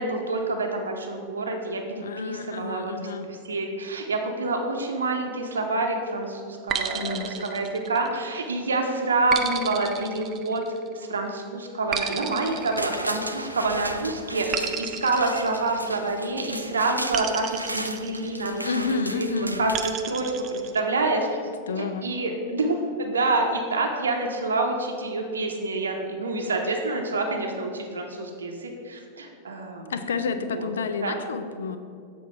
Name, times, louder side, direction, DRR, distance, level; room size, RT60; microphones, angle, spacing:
voice 1, 0.0-2.9 3.4-10.6 10.9-21.3 21.7-29.9 30.6-30.7 31.0-31.2, right 2 dB, 70° right, 2 dB, 0.7 m, -27 dB
voice 2, 2.0-3.3 6.9-7.6 18.6-19.6 21.7-22.1 29.9-31.8, left 4 dB, 65° left, 9 dB, 0.5 m, -30 dB
sound 1, 6.7-8.4 9.3-11.0 11.9-13.6 14.5-16.3 17.1-18.7 19.7-20.8, right 8 dB, 30° right, 0.5 m, -33 dB
sound 2, 12.4-20.6 21.0-21.1, right 1 dB, 85° right, 0.3 m, -36 dB
7.3 x 4.3 x 5.7 m, 2.3 s
figure-of-eight pair, 90°, 0 cm